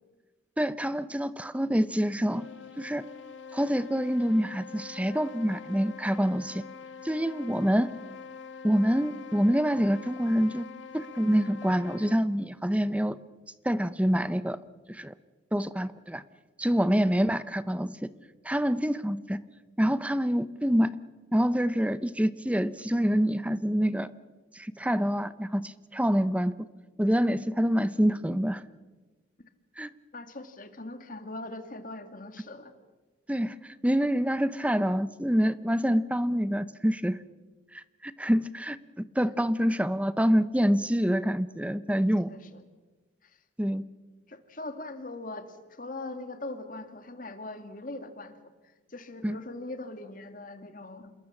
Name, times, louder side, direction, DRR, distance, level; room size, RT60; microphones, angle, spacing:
voice 1, 0.6-2.5 2.8-3.1 3.5-6.6 7.0-7.9 8.6-10.7 10.9-13.2 13.6-14.6 14.9-15.1 15.5-16.2 16.6-18.1 18.4-19.4 19.8-21.0 21.3-24.1 24.5-26.5 27.0-28.6 29.8-29.9 33.3-37.2 37.7-42.3 43.6-43.8 49.2-49.4, equal, 5° right, 15 dB, 0.7 m, -26 dB
sound 1, 2.1-12.4, left 6 dB, 80° left, 1.9 m, -45 dB
voice 2, 30.1-32.7 39.3-39.4 42.3-42.6 43.2-43.4 44.3-51.1, left 2 dB, 45° left, 8 dB, 2.1 m, -41 dB
27.0 x 21.5 x 7.3 m, 1.3 s
head